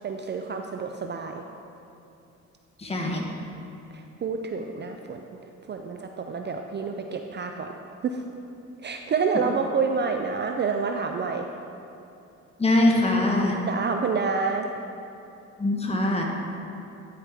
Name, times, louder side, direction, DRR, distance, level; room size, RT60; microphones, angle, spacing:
voice 1, 0.0-1.4 3.9-5.2 5.7-7.7 8.0-8.2 8.8-11.5 13.7-14.7, right 5 dB, 35° right, 4 dB, 0.4 m, -28 dB
voice 2, 2.8-3.2 12.6-13.6 15.6-16.2, left 1 dB, 20° left, -1 dB, 1.3 m, -22 dB
11.0 x 4.8 x 3.6 m, 2.8 s
cardioid pair, 90°, 30 cm